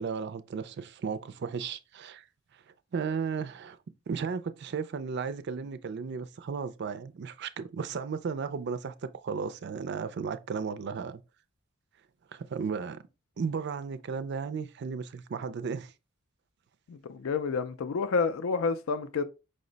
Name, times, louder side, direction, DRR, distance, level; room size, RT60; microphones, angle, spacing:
voice 1, 0.0-2.2 2.9-3.8 4.1-11.2 12.3-13.0 13.4-15.9, right 5 dB, 55° right, 0.4 m, -34 dB
voice 2, 16.9-19.2, left 4 dB, 80° left, 0.4 m, -29 dB
5.2 x 2.1 x 3.8 m
head